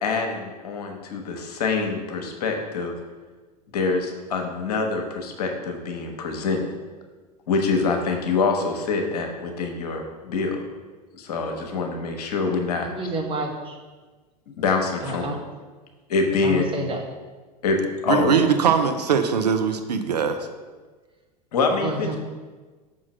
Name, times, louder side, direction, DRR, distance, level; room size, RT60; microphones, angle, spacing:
voice 1, 0.0-2.9 3.7-6.6 7.5-10.6 11.1-13.1 14.6-15.2 16.1-16.6 17.6-17.8 18.0-18.3 21.5-22.2, left 4 dB, 70° left, 3 dB, 1.1 m, -25 dB
voice 2, 12.9-13.8 15.0-15.4 16.4-17.0 21.8-22.2, right 2 dB, 25° right, 2 dB, 1.3 m, -29 dB
voice 3, 18.1-20.4, right 6 dB, 80° right, 8 dB, 0.6 m, -21 dB
6.0 x 3.8 x 6.2 m, 1.3 s
figure-of-eight pair, 80°, 21 cm